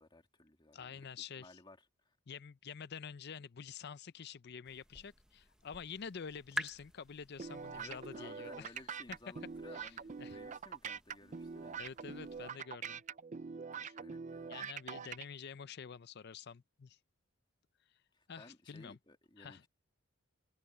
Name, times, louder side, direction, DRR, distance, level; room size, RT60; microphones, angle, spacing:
voice 1, 0.0-1.1 1.4-1.8 2.0-2.2 7.7-11.9 13.7-14.6 18.1-19.7, left 2 dB, 20° left, 2.3 m, -57 dB
voice 2, 0.7-1.6 2.3-8.7 9.7-10.4 11.8-13.0 13.8-13.9 14.5-17.0 18.3-19.0 19.4-19.6, left 6 dB, 50° left, 0.5 m, -48 dB
sound 1, 4.6-12.5, right 1 dB, 5° right, 0.8 m, -49 dB
sound 2, 7.4-15.2, right 6 dB, 35° right, 0.4 m, -44 dB
head